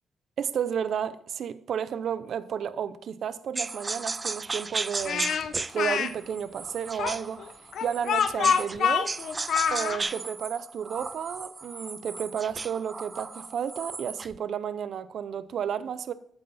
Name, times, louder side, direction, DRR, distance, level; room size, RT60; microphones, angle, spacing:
voice 1, 0.4-7.5 7.8-9.1 9.7-16.1, right 8 dB, 65° right, 0.7 m, -32 dB
sound 1, 3.6-8.8 9.1-14.4, right 3 dB, 25° right, 0.4 m, -35 dB
Speech, 5.0-6.1 7.0-10.0, left 7 dB, 75° left, 0.8 m, -26 dB
13.5 x 9.0 x 4.2 m
cardioid pair, 130°, 0 cm